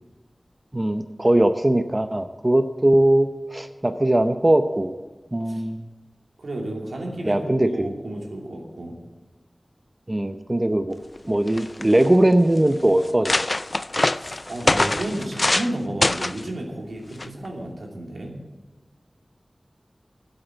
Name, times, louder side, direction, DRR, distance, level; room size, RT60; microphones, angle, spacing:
voice 1, 0.7-4.9 5.3-5.9 7.2-7.9 10.1-11.0 11.3-13.4, right 1 dB, 25° right, 8 dB, 0.7 m, -20 dB
voice 2, 6.4-9.0 14.1-18.4, right 1 dB, 90° right, 0 dB, 2.7 m, -32 dB
sound 1, 11.2-11.3 11.5-12.1 12.7-12.8 13.0-15.7 16.0-16.4 17.2-17.5, left 2 dB, 40° left, 0.3 m, -23 dB
12.0 x 8.0 x 8.9 m, 1.2 s
wide cardioid pair, 60°, 0 cm